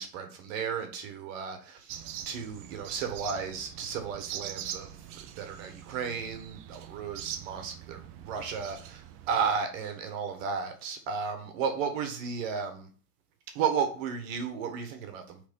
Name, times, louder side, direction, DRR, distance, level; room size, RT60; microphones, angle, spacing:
voice 1, 0.0-12.9 13.5-15.4, right 6 dB, 55° right, 1.5 m, -34 dB
sound 1, 1.9-9.5, right 10 dB, 30° right, 0.5 m, -43 dB
5.0 x 3.5 x 5.3 m
hypercardioid pair, 115°, 47 cm